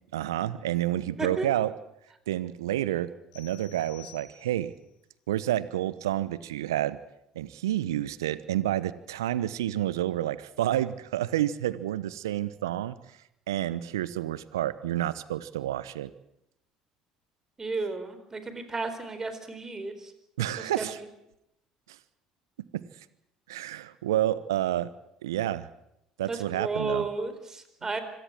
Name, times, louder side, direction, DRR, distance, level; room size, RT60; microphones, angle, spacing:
voice 1, 0.1-1.7 2.3-4.7 5.3-7.0 7.3-13.2 13.5-16.1 20.4-21.0 21.9-22.0 22.7-22.8 23.5-24.9 25.2-25.7 26.2-27.0 27.8-28.0, right 13 dB, 80° right, 17 dB, 1.0 m, -29 dB
sound 1, 3.3-4.8, left 12 dB, 75° left, 5.9 m, -51 dB
voice 2, 17.6-20.1 20.6-20.8 26.2-28.0, right 3 dB, 25° right, 9 dB, 4.4 m, -33 dB
25.5 x 17.0 x 7.7 m, 0.82 s
hypercardioid pair, 60°, 2 cm